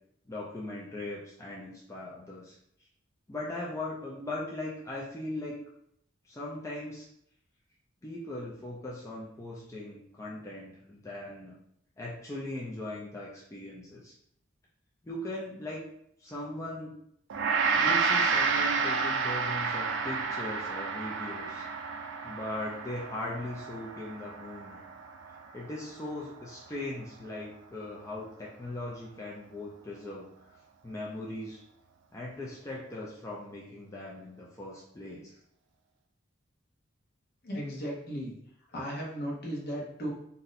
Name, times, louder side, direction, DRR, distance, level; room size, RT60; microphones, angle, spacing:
voice 1, 0.3-2.6 3.3-5.6 6.2-7.1 8.0-11.6 12.0-14.1 15.0-15.8 16.2-17.0 17.7-21.7 22.2-24.8 25.5-30.3 30.8-31.6 32.1-35.3, left 1 dB, 15° left, -5 dB, 0.4 m, -39 dB
Gong, 17.3-26.7, right 5 dB, 65° right, 0.4 m, -30 dB
voice 2, 37.4-38.3 38.7-40.1, equal, 50° left, -3 dB, 0.9 m, -35 dB
2.6 x 2.1 x 3.9 m, 0.72 s
head